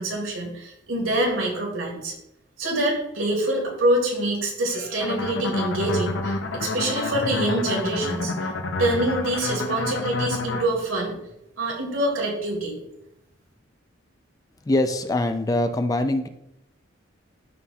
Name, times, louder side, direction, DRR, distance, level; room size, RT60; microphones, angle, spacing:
voice 1, 0.0-2.1 2.6-8.5 8.8-11.2 11.6-12.8, right 1 dB, 90° right, 0 dB, 2.3 m, -25 dB
sound 1, 5.0-10.7, left 3 dB, 65° left, 0.6 m, -28 dB
voice 2, 14.7-16.3, left 1 dB, 20° left, 7 dB, 0.4 m, -23 dB
12.5 x 4.3 x 2.3 m, 0.82 s
head